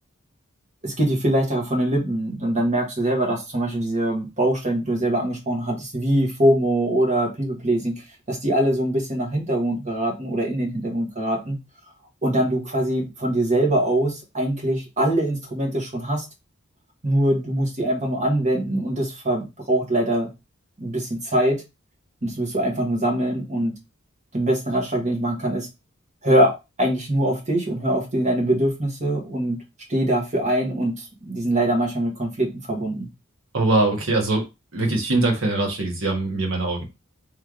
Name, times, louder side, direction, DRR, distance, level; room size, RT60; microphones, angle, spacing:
voice 1, 0.8-11.6 12.2-16.2 17.0-20.3 20.8-21.6 22.2-23.7 24.3-25.7 26.2-26.5 26.8-29.6 29.9-33.1, right 1 dB, 35° right, 1 dB, 1.3 m, -23 dB
voice 2, 33.5-34.4 34.7-36.8, right 2 dB, 70° right, 1 dB, 1.4 m, -22 dB
3.3 x 3.2 x 3.7 m, 0.25 s
head